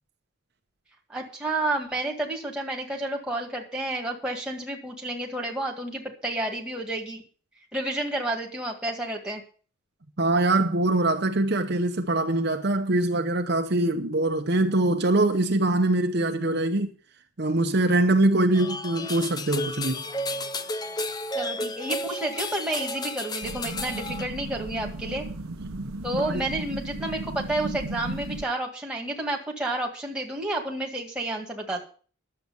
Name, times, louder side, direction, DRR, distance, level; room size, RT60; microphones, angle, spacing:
voice 1, 1.1-7.2 7.7-9.4 21.3-25.3 26.0-31.8, right 2 dB, 5° right, 1.9 m, -30 dB
voice 2, 10.2-16.9 17.4-20.0 26.2-26.4, right 2 dB, 50° right, 0.8 m, -23 dB
sound 1, 18.5-24.2, left 1 dB, 20° left, 0.5 m, -32 dB
sound 2, 23.4-28.4, right 2 dB, 85° right, 0.9 m, -35 dB
11.0 x 7.7 x 6.9 m
head